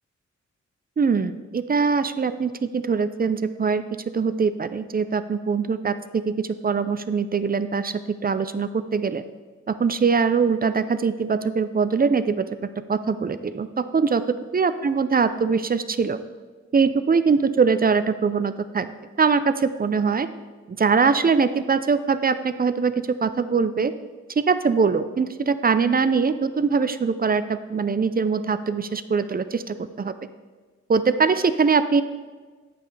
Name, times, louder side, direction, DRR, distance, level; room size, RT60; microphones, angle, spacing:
voice 1, 1.0-3.8 4.1-9.2 9.7-12.4 12.9-14.2 14.5-16.2 16.7-18.9 19.2-20.3 20.7-23.9 24.5-30.1 30.9-32.0, right 5 dB, 30° right, 12 dB, 0.5 m, -22 dB
9.1 x 7.6 x 3.3 m, 1.4 s
cardioid pair, 55°, 30 cm